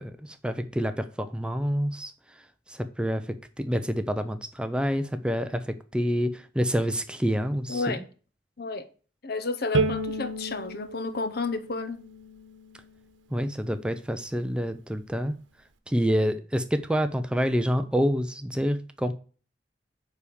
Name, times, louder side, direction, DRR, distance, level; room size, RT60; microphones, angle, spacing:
voice 1, 0.0-2.1 2.7-7.9 13.3-15.4 15.9-19.1, equal, 5° right, 0.5 m, -27 dB
voice 2, 7.7-8.0 8.6-8.9 9.2-12.0, left 3 dB, 55° left, 0.9 m, -31 dB
Bowed string instrument, 9.7-13.0, right 2 dB, 90° right, 1.0 m, -31 dB
9.2 x 3.5 x 6.9 m
head